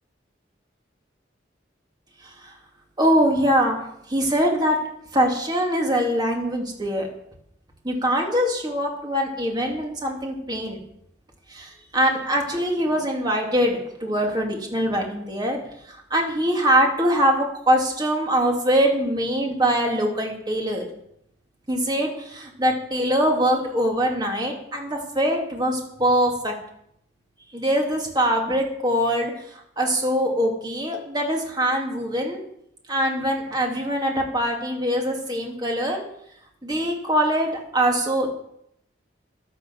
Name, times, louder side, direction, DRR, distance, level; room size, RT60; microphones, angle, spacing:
voice 1, 2.2-2.5 3.0-3.8 4.1-4.8 5.1-7.1 7.8-10.8 11.5-15.6 15.9-20.8 21.7-26.5 27.5-32.4 32.9-36.0 36.6-38.3, equal, 20° right, 1 dB, 2.9 m, -23 dB
12.0 x 11.0 x 7.3 m, 0.72 s
head